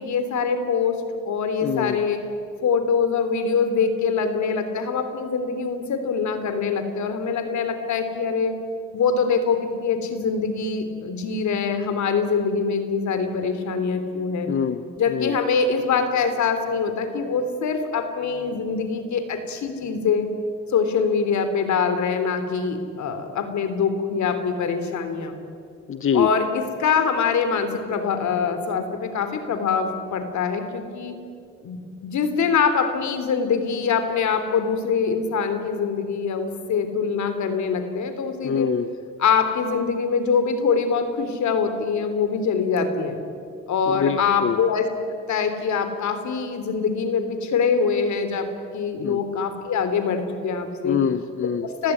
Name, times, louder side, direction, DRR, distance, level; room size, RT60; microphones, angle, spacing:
voice 1, 0.0-2.2 2.6-8.6 8.9-14.5 15.0-20.3 20.7-25.3 26.1-31.2 31.6-38.7 39.2-43.2 43.7-44.9 45.3-48.5 48.7-51.0 51.8-51.9, left 5 dB, 70° left, 9 dB, 3.4 m, -24 dB
voice 2, 1.6-2.0 14.5-14.8 15.1-15.3 25.9-26.3 38.4-38.9 43.9-44.6 49.0-49.2 50.9-51.7, left 7 dB, 45° left, 11 dB, 1.0 m, -24 dB
29.5 x 16.0 x 10.0 m, 2.4 s
cardioid pair, 90°, 30 cm